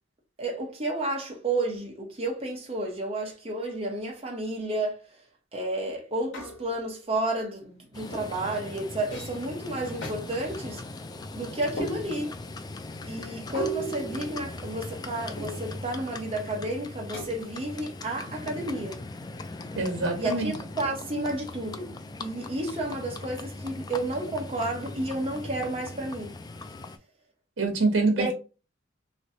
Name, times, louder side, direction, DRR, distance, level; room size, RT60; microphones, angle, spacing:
voice 1, 0.4-5.0 5.5-10.8 11.3-12.3 13.1-19.0 20.2-26.4 28.2-28.3, right 1 dB, 30° right, 1.1 m, -31 dB
sound 1, 6.3-6.9 8.1-8.4 9.1-9.5 10.0-10.2 11.8-12.4 13.5-14.9 15.4-15.9 17.1-17.7, right 2 dB, 65° left, 1.3 m, -37 dB
Livestock farm animals working animals, 7.9-27.0, left 2 dB, 20° left, 0.3 m, -40 dB
voice 2, 19.8-20.5 27.6-28.3, right 3 dB, 75° right, 1.2 m, -25 dB
3.2 x 3.0 x 2.7 m
head